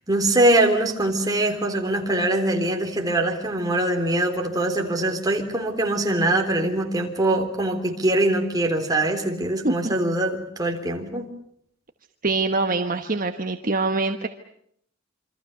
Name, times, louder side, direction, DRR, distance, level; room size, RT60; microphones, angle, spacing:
voice 1, 0.1-11.3, right 1 dB, 20° right, 3 dB, 3.6 m, -23 dB
voice 2, 12.2-14.3, right 3 dB, 45° right, 7 dB, 1.2 m, -24 dB
27.5 x 25.5 x 6.8 m, 0.68 s
head